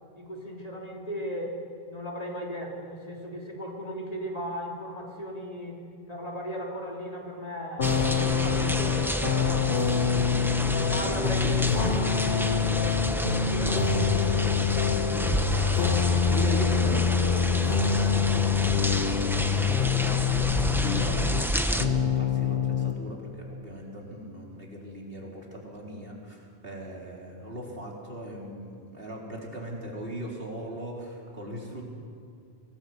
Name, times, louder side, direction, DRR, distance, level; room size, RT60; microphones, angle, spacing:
voice 1, 0.1-1.6 1.9-9.9 10.8-13.0 13.3-14.5, equal, 35° left, -1 dB, 3.5 m, -37 dB
sound 1, 7.8-21.5 21.8-23.0, left 7 dB, 60° left, 1.3 m, -26 dB
sound 2, 7.8-21.9, equal, ahead, 1.0 m, -30 dB
voice 2, 15.5-31.8, right 1 dB, 60° right, -2 dB, 4.3 m, -39 dB
25.5 x 18.0 x 8.1 m, 2.3 s
omnidirectional pair, 1.1 m